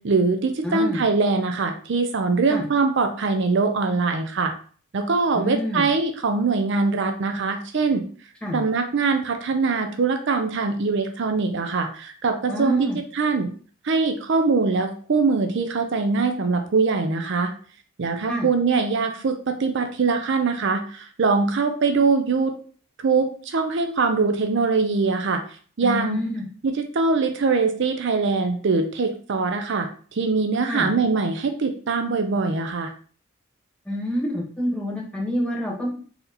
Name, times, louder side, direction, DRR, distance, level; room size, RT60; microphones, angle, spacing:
voice 1, 0.0-4.5 4.9-8.0 8.5-13.5 13.8-17.5 18.0-22.5 23.0-25.4 25.8-26.2 26.6-32.9, right 4 dB, 55° right, 6 dB, 0.5 m, -22 dB
voice 2, 0.6-1.0 2.5-2.6 5.3-5.8 8.4-8.6 12.5-13.0 18.3-18.5 25.8-26.5 30.7-30.9 33.9-35.9, left 1 dB, 5° left, -2 dB, 1.0 m, -27 dB
4.2 x 2.8 x 3.9 m, 0.43 s
head